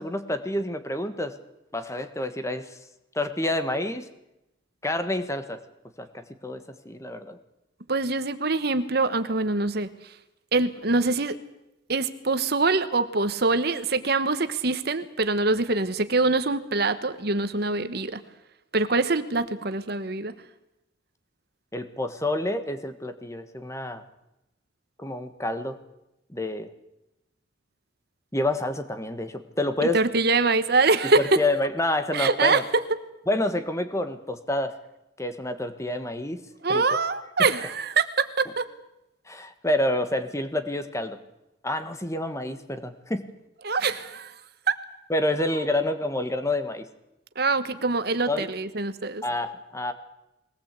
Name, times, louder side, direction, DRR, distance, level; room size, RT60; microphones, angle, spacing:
voice 1, 0.0-1.3 1.7-2.8 3.1-4.0 4.8-5.6 6.0-7.4 21.7-24.0 25.0-25.8 26.3-26.7 28.3-30.0 31.0-32.6 33.3-34.7 35.2-36.4 36.7-36.8 37.4-37.5 39.3-41.2 41.6-43.3 45.1-46.8 48.3-48.5 49.2-49.9, left 1 dB, 15° left, 9 dB, 1.5 m, -28 dB
voice 2, 7.9-9.9 10.5-11.4 11.9-18.2 18.7-20.3 29.9-31.4 32.1-32.8 36.6-38.7 43.6-44.3 44.7-44.8 47.4-49.2, right 3 dB, 55° right, 11 dB, 1.2 m, -24 dB
22.0 x 18.5 x 8.3 m, 0.89 s
head